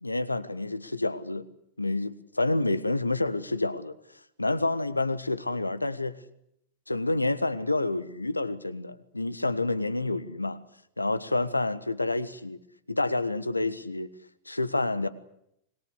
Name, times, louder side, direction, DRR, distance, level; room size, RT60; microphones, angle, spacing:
voice 1, 0.0-1.5 1.8-3.9 4.4-6.2 6.9-10.6 11.0-12.6 12.9-14.1 14.5-15.1, left 2 dB, 85° left, 1.4 m, -28 dB
25.5 x 21.5 x 8.3 m
figure-of-eight pair, 90°, 0 cm